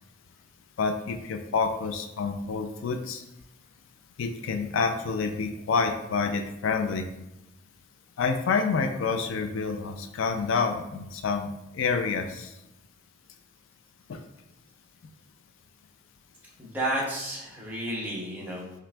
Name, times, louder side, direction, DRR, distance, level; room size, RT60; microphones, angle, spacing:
voice 1, 0.8-3.2 4.2-7.1 8.2-11.5 11.7-12.5 14.1-14.2, left 5 dB, 70° left, 6 dB, 0.3 m, -28 dB
voice 2, 16.6-18.7, right 1 dB, 10° right, -4 dB, 0.7 m, -32 dB
5.7 x 2.5 x 2.2 m, 0.90 s
head